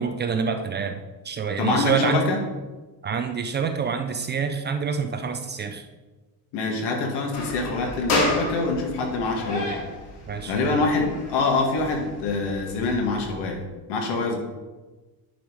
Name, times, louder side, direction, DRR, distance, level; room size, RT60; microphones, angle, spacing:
voice 1, 0.0-2.3 3.0-5.9 10.3-10.9, right 6 dB, 25° right, 7 dB, 0.4 m, -27 dB
voice 2, 1.6-2.4 6.5-9.7 10.5-13.6 13.9-14.4, left 3 dB, 75° left, 1 dB, 2.1 m, -25 dB
sound 1, 7.3-13.4, left 2 dB, 50° left, 2.8 m, -31 dB
10.5 x 5.6 x 4.7 m, 1.2 s
cardioid pair, 165°, 41 cm